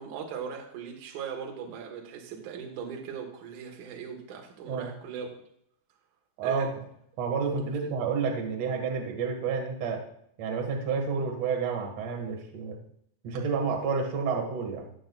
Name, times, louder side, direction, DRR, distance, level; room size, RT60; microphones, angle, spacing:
voice 1, 0.0-5.3 6.4-6.7 7.8-7.9, right 7 dB, 90° right, 2 dB, 1.7 m, -39 dB
voice 2, 6.4-6.7 7.2-10.0 10.4-12.8 13.2-14.8, right 5 dB, 75° right, 2 dB, 1.5 m, -30 dB
18.5 x 6.9 x 2.4 m, 0.71 s
omnidirectional pair, 5.9 m